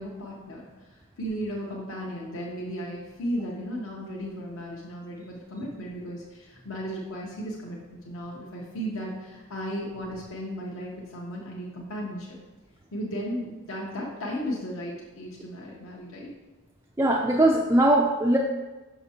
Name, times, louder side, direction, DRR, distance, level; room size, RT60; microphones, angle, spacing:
voice 1, 0.0-12.4 12.9-16.3, equal, 60° left, -3 dB, 0.9 m, -35 dB
voice 2, 17.0-18.4, right 1 dB, 10° right, -1 dB, 0.3 m, -20 dB
6.2 x 5.9 x 2.8 m, 1.1 s
head